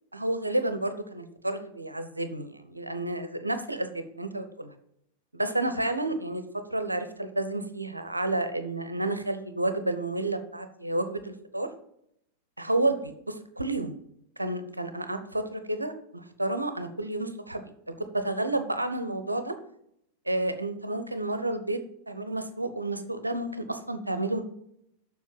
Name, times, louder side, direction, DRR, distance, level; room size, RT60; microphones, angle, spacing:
voice 1, 0.1-4.7 5.3-6.4 6.7-11.7 12.6-14.0 14.4-17.6 18.1-19.5 20.3-24.4, right 2 dB, 85° right, 9 dB, 0.8 m, -30 dB
7.3 x 6.1 x 7.3 m, 0.74 s
figure-of-eight pair, 90°, 0 cm